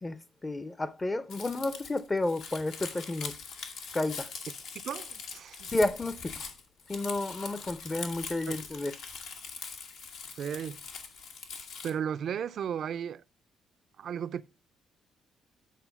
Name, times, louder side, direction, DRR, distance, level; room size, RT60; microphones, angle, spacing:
voice 1, 0.0-3.3 3.9-4.3 5.7-6.5 6.9-8.9, left 2 dB, 20° left, 0.5 m, -31 dB
Crumpling crinkling, 1.3-11.9, left 5 dB, 85° left, 1.3 m, -42 dB
voice 2, 4.8-5.7 8.5-8.6 10.4-10.8 11.8-13.2 14.0-14.4, right 8 dB, 65° right, 0.4 m, -35 dB
9.1 x 4.3 x 5.8 m
cardioid pair, 90°, 0 cm